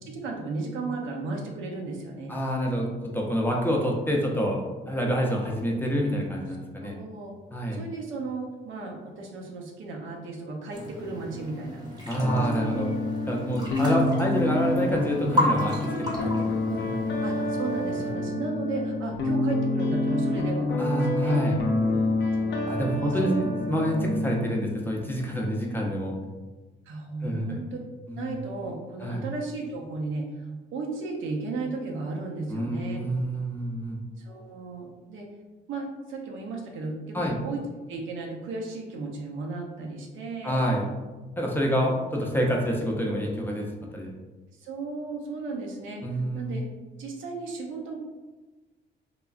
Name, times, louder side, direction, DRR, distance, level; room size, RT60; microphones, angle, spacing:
voice 1, 0.1-2.3 6.8-7.3 7.7-11.8 12.1-13.0 16.7-16.8 17.2-21.4 22.3-23.4 26.9-27.8 28.1-30.5 30.7-33.0 34.2-35.3 35.7-37.6 37.9-40.6 41.7-41.9 44.5-46.6 47.0-48.0, right 3 dB, 75° right, 0 dB, 0.6 m, -35 dB
voice 2, 2.3-2.9 3.1-4.6 4.9-7.0 7.5-7.8 12.1-12.9 13.3-17.0 18.1-18.3 20.8-21.6 22.7-26.1 27.2-27.6 28.1-28.3 29.0-29.2 32.5-34.0 37.1-37.4 40.4-40.9 41.4-43.7 43.9-44.2 46.0-46.6, equal, 10° left, -1 dB, 0.5 m, -27 dB
sound 1, 10.7-18.1, left 1 dB, 20° right, 0.8 m, -33 dB
sound 2, 12.2-24.4, left 2 dB, 60° left, 0.5 m, -28 dB
3.0 x 2.3 x 2.3 m, 1.2 s
cardioid pair, 90°, 20 cm